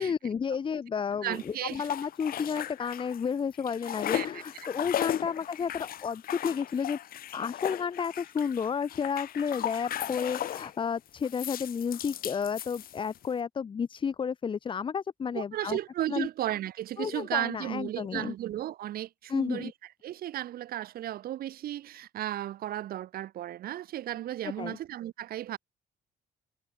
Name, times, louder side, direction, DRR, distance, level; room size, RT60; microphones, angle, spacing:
voice 1, 0.0-7.0 7.3-15.8 16.1-16.3 17.0-18.3 19.3-19.7 24.6-24.8, left 6 dB, 30° left, 0.8 m, -32 dB
voice 2, 1.2-1.8 4.1-4.4 15.3-19.7 20.0-25.6, right 13 dB, 60° right, 1.3 m, -34 dB
sound 1, 1.3-3.3 3.5-10.7 11.2-13.3, left 11 dB, 60° left, 2.2 m, -36 dB
cardioid pair, 110°, 17 cm